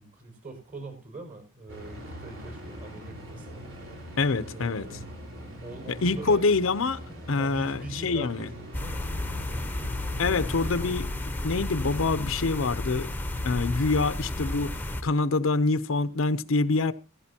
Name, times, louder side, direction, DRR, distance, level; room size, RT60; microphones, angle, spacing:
voice 1, 0.0-3.7 4.5-5.0 5.6-6.4 7.4-9.6, right 2 dB, 40° right, 5.8 m, -43 dB
sound 1, 1.7-10.9, equal, 65° right, 4.3 m, -42 dB
voice 2, 4.2-4.9 5.9-7.0 7.3-8.5 10.2-13.1 13.4-16.9, left 3 dB, 65° left, 0.7 m, -26 dB
sound 2, 8.7-15.0, left 1 dB, 10° left, 0.9 m, -32 dB
16.0 x 15.5 x 2.8 m
head